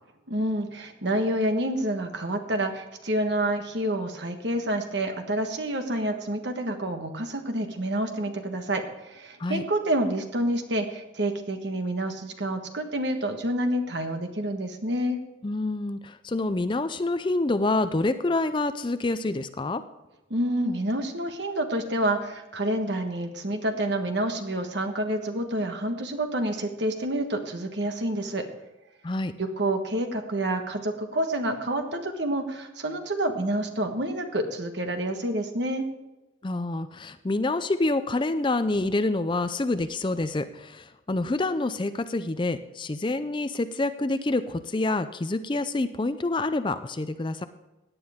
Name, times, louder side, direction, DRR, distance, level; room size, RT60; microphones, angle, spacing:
voice 1, 0.3-15.2 20.3-28.4 29.4-35.9, right 1 dB, 60° right, 5 dB, 1.4 m, -28 dB
voice 2, 15.4-19.8 29.0-29.3 36.4-47.4, left 2 dB, 25° left, 11 dB, 0.4 m, -27 dB
17.0 x 9.6 x 3.6 m, 1.0 s
head